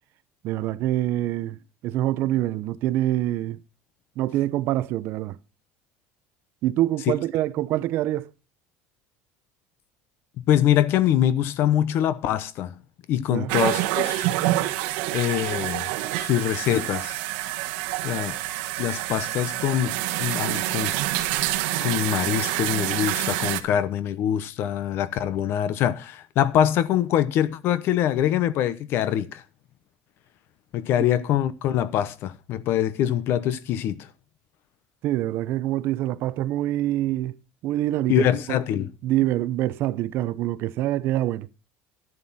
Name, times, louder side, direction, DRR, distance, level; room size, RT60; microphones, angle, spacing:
voice 1, 0.4-1.6 1.8-3.6 4.2-5.4 6.6-8.3 13.3-13.5 35.0-37.4 37.6-38.6 39.0-41.5, right 14 dB, 45° right, 0.7 m, -25 dB
voice 2, 10.5-12.8 13.1-14.3 15.1-15.8 16.2-17.2 18.0-18.4 18.8-20.9 21.8-29.4 30.7-34.0 38.1-38.9, left 11 dB, 45° left, 0.8 m, -24 dB
sound 1, 13.5-23.6, right 15 dB, 75° right, 1.3 m, -27 dB
11.0 x 11.0 x 4.2 m
cardioid pair, 165°, 5 cm